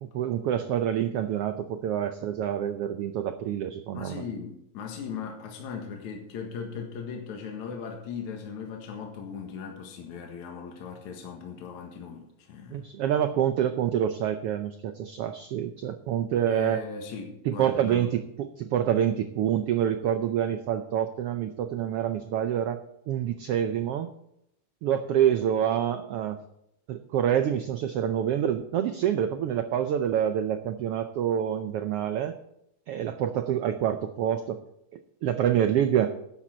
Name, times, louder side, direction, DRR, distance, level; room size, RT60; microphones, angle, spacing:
voice 1, 0.0-4.2 12.7-16.8 17.4-24.1 24.8-26.4 26.9-32.4 32.9-34.6 35.2-36.1, right 10 dB, 85° right, 8 dB, 1.3 m, -27 dB
voice 2, 3.9-12.9 16.5-18.1, left 6 dB, 70° left, 1 dB, 2.9 m, -38 dB
13.0 x 10.5 x 4.3 m, 0.78 s
omnidirectional pair, 3.5 m